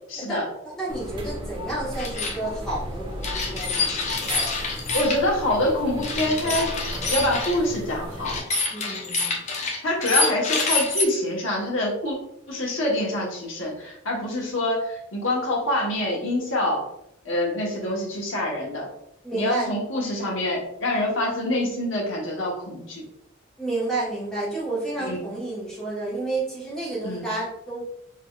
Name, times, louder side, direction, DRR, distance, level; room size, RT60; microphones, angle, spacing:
voice 1, 0.1-0.5 4.9-6.7 7.1-8.4 9.8-12.2 12.5-16.8 17.2-18.9 19.3-23.0 25.0-25.2 27.0-27.3, left 1 dB, 70° left, -2 dB, 1.2 m, -25 dB
voice 2, 0.6-3.9 8.7-9.4 19.2-19.7 23.6-27.8, right 2 dB, 5° left, -8 dB, 1.4 m, -30 dB
sound 1, 0.9-8.4, equal, 25° right, 0.6 m, -35 dB
sound 2, 2.0-2.4 3.2-5.2 6.0-7.6 8.2-11.0, left 4 dB, 35° left, 0.6 m, -26 dB
3.8 x 3.4 x 2.3 m, 0.79 s
head